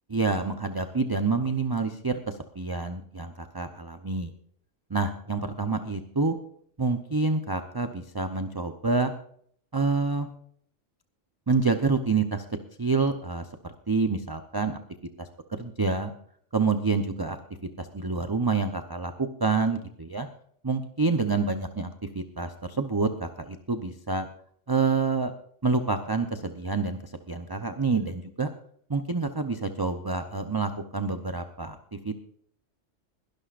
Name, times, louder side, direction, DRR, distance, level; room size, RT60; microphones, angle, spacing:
voice 1, 0.1-4.3 4.9-6.4 6.8-9.1 9.7-10.3 11.5-12.4 12.8-14.8 15.2-16.1 16.5-17.4 17.8-20.3 20.6-24.3 24.7-25.3 25.6-28.5 28.9-32.3, right 4 dB, 25° right, 7 dB, 0.6 m, -27 dB
21.5 x 12.0 x 2.5 m, 0.63 s
omnidirectional pair, 1.3 m